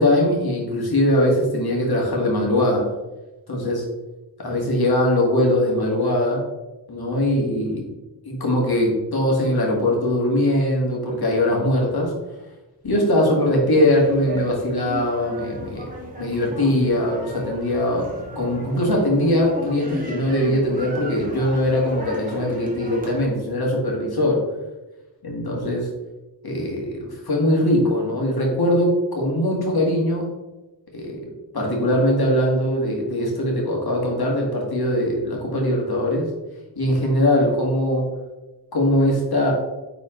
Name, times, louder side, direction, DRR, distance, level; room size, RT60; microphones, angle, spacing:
voice 1, 0.0-2.8 3.5-3.9 4.4-6.4 6.9-7.9 8.3-12.1 12.8-15.9 16.2-18.1 18.4-24.5 25.2-25.9 26.4-30.3 30.9-31.3 31.5-36.3 36.8-38.1 38.7-39.5, left 1 dB, 55° left, -1 dB, 2.2 m, -21 dB
sound 1, 13.9-23.3, right 1 dB, 20° right, 1.8 m, -35 dB
9.3 x 4.2 x 3.9 m, 1.1 s
wide cardioid pair, 130°, 44 cm